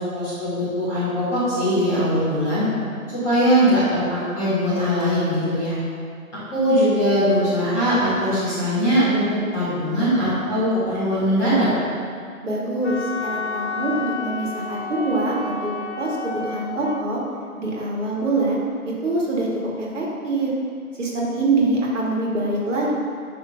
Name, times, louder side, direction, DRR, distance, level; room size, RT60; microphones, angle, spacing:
voice 1, 0.0-2.6 3.1-5.8 6.5-9.2 9.5-11.7, equal, 5° left, -15 dB, 1.6 m, -21 dB
voice 2, 12.4-15.7 16.0-17.2 17.6-18.6 19.0-19.5 19.8-20.5 21.0-22.9, right 2 dB, 55° right, -4 dB, 2.2 m, -24 dB
Wind instrument woodwind instrument, 12.8-17.1, left 4 dB, 50° left, 0.6 m, -31 dB
9.9 x 3.7 x 5.8 m, 2.3 s
figure-of-eight pair, 155°, 44 cm